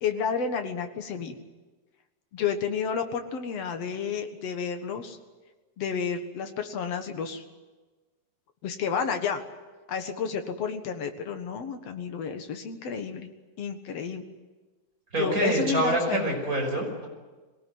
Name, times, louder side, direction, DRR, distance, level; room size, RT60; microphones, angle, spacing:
voice 1, 0.0-1.4 2.3-5.2 5.8-7.4 8.6-9.4 9.9-13.3 13.6-14.2 15.2-16.3, left 6 dB, 55° left, 6 dB, 2.2 m, -31 dB
voice 2, 15.1-17.1, right 1 dB, 25° right, 1 dB, 5.7 m, -26 dB
22.5 x 19.0 x 9.4 m, 1.3 s
omnidirectional pair, 4.0 m